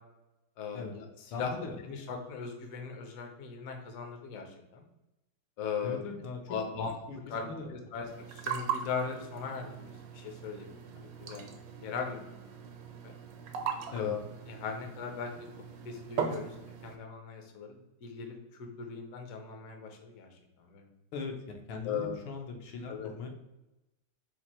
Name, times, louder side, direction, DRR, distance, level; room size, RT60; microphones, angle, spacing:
voice 1, 0.6-4.8 5.6-6.0 6.5-6.9 7.3-11.5 11.8-13.1 13.9-15.5 15.8-20.3 20.6-20.8 21.8-22.2 22.9-23.1, left 6 dB, 65° left, 4 dB, 0.9 m, -39 dB
voice 2, 1.3-1.8 5.8-7.2 7.4-7.7 13.9-14.1 21.1-21.4 21.7-23.3, left 4 dB, 80° left, 3 dB, 1.6 m, -40 dB
sound 1, 8.1-17.0, right 7 dB, 70° right, 1.2 m, -40 dB
4.4 x 2.5 x 4.1 m, 0.95 s
omnidirectional pair, 2.2 m